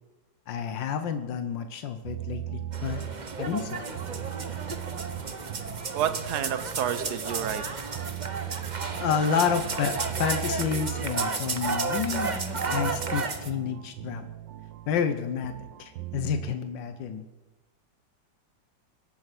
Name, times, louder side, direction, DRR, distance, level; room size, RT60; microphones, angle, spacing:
voice 1, 0.5-3.0 3.4-3.8 9.0-9.9 10.2-14.3 14.9-15.5 15.8-17.2, left 7 dB, 85° left, 8 dB, 1.6 m, -29 dB
sound 1, 2.0-16.5, right 13 dB, 85° right, 1.5 m, -39 dB
sound 2, 2.7-13.5, right 4 dB, 30° right, 0.9 m, -32 dB
voice 2, 5.9-7.6, right 10 dB, 65° right, 12 dB, 1.5 m, -29 dB
22.5 x 10.5 x 6.1 m, 1.1 s
omnidirectional pair, 1.9 m